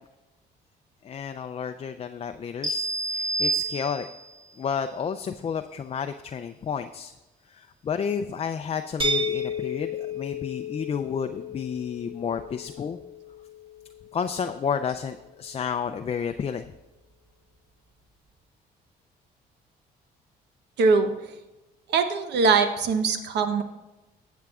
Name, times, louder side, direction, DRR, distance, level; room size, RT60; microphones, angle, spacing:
voice 1, 1.0-4.1 4.6-7.1 7.5-13.0 14.1-16.7, left 7 dB, 35° left, 8 dB, 0.4 m, -31 dB
sound 1, 2.6-4.4, right 2 dB, 45° right, 1.7 m, -28 dB
sound 2, 9.0-14.8, left 3 dB, 30° right, 1.4 m, -33 dB
voice 2, 20.8-21.1 21.9-23.6, right 4 dB, 75° right, 8 dB, 0.9 m, -22 dB
14.5 x 8.2 x 2.4 m, 1.0 s
cardioid pair, 85°, 18 cm